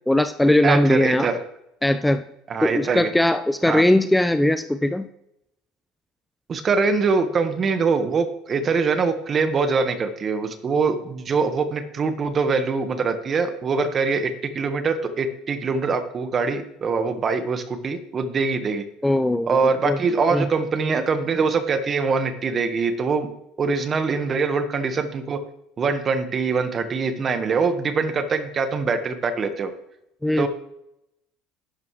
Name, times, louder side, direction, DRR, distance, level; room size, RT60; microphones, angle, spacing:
voice 1, 0.1-1.3 1.8-2.2 2.6-5.1 19.0-19.6 19.8-20.0 20.3-20.5 30.2-30.5, left 1 dB, 5° left, 11 dB, 0.5 m, -19 dB
voice 2, 0.6-1.4 2.5-3.1 3.7-3.8 6.5-18.8 19.4-23.3 23.6-25.4 25.8-29.7 30.4-30.5, right 4 dB, 40° right, 9 dB, 1.5 m, -23 dB
11.5 x 10.5 x 3.3 m, 0.81 s
hypercardioid pair, 80°, 0 cm